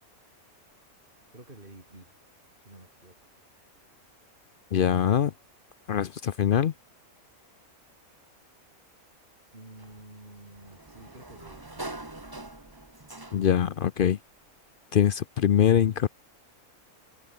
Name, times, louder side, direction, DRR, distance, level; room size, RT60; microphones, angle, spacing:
voice 1, 1.3-2.2 2.6-3.3 9.5-12.1, right 2 dB, 35° right, 4.8 m, -50 dB
voice 2, 4.7-5.3 5.9-6.7 13.3-14.2 14.9-16.1, left 9 dB, 60° left, 0.5 m, -23 dB
Sliding door, 9.8-13.7, right 2 dB, 15° right, 1.7 m, -43 dB
omnidirectional pair, 1.5 m